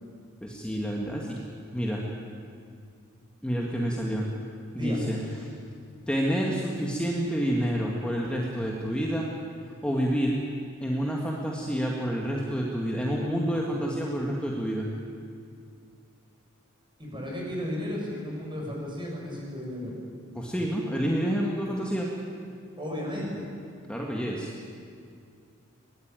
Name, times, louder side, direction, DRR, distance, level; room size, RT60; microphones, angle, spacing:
voice 1, 0.4-1.4 1.7-2.0 3.4-4.3 4.7-5.2 6.1-9.3 9.8-10.4 10.8-14.9 20.3-22.1 23.9-24.5, equal, 5° left, -2 dB, 2.0 m, -28 dB
voice 2, 17.0-19.9 22.8-23.5, left 1 dB, 25° right, -2 dB, 7.1 m, -34 dB
22.5 x 18.5 x 9.2 m, 2.3 s
head